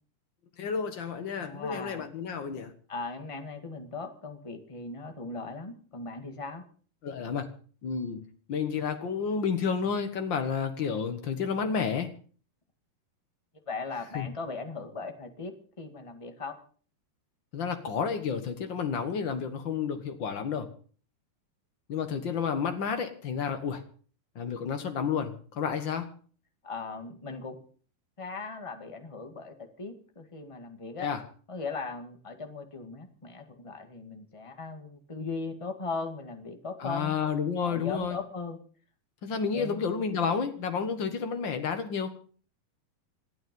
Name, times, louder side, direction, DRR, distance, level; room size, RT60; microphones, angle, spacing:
voice 1, 0.6-2.7 7.0-7.5 7.8-8.2 8.5-12.1 14.1-14.3 17.5-20.7 21.9-23.8 24.3-26.1 31.0-31.2 36.8-38.2 39.2-42.1, left 6 dB, 85° left, 7 dB, 1.0 m, -30 dB
voice 2, 1.4-2.1 2.9-6.6 13.7-16.5 26.6-27.5 28.2-31.1 31.5-37.2 37.6-38.6 39.5-39.8, left 4 dB, 25° left, 5 dB, 0.6 m, -38 dB
27.0 x 9.5 x 5.4 m, 0.43 s
omnidirectional pair, 4.4 m